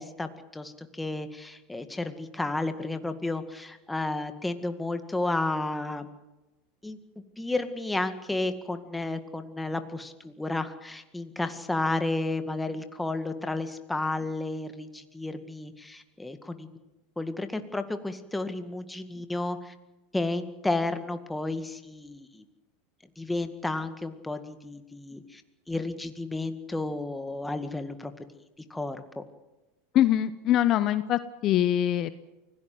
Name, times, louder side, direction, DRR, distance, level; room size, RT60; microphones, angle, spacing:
voice 1, 0.0-6.1 6.8-7.0 7.4-16.7 17.2-19.7 20.1-22.4 23.2-25.4 25.7-28.1 28.7-29.2, left 2 dB, 10° left, 8 dB, 2.0 m, -32 dB
voice 2, 29.9-32.1, left 12 dB, 45° left, 13 dB, 1.0 m, -23 dB
24.5 x 17.0 x 7.9 m, 1.0 s
supercardioid pair, 110°, 0 cm